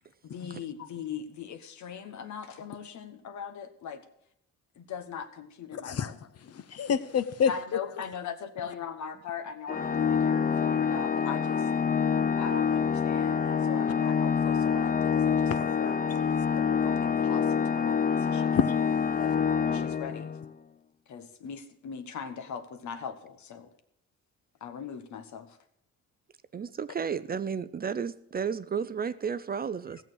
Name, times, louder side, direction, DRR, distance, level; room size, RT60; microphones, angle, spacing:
voice 1, 0.3-4.0 4.8-6.1 7.5-11.7 12.4-18.6 19.1-20.3 21.1-23.7 24.6-25.6, left 7 dB, 70° left, 1.2 m, -40 dB
voice 2, 5.7-7.5 15.5-15.6 18.5-18.7, left 7 dB, 55° left, 0.9 m, -28 dB
Organ, 9.7-20.5, left 7 dB, 30° left, 0.6 m, -26 dB
voice 3, 26.5-30.0, right 6 dB, 30° right, 0.5 m, -32 dB
15.5 x 7.0 x 6.3 m
cardioid pair, 90°, 30 cm